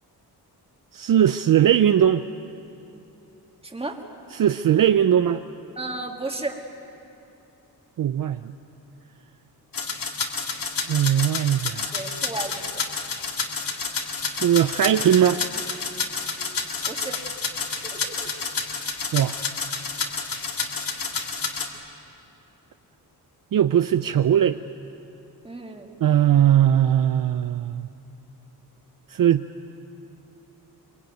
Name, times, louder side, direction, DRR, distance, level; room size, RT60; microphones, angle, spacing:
voice 1, 0.9-2.2 4.3-5.4 8.0-8.4 10.9-11.9 14.3-15.4 19.1-19.4 23.5-24.6 26.0-27.9 29.1-29.7, right 10 dB, 55° right, 10 dB, 0.5 m, -19 dB
voice 2, 3.6-4.0 5.8-6.6 11.9-12.9 16.9-17.2 17.8-18.3 25.4-25.9, right 2 dB, 15° right, 2 dB, 1.8 m, -33 dB
sound 1, 9.7-21.7, left 5 dB, 60° left, 2.2 m, -30 dB
24.0 x 23.5 x 9.2 m, 2.8 s
wide cardioid pair, 170°, 39 cm